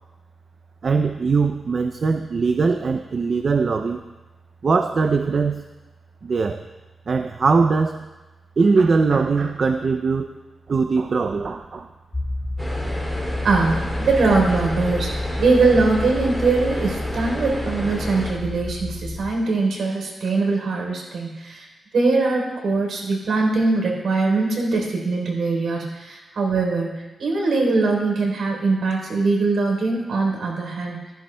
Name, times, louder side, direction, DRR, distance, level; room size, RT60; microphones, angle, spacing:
voice 1, 0.8-4.1 4.6-5.7 6.2-6.6 7.1-8.1 8.6-10.3 10.7-11.9, right 4 dB, 45° right, 7 dB, 0.4 m, -21 dB
sound 1, 12.1-19.2, left 1 dB, 15° left, 3.1 m, -29 dB
sound 2, 12.6-18.3, equal, ahead, 2.4 m, -31 dB
voice 2, 13.4-21.7 21.9-31.0, right 3 dB, 80° right, -1 dB, 3.4 m, -21 dB
15.0 x 14.5 x 2.2 m, 1.2 s
wide cardioid pair, 150°, 0 cm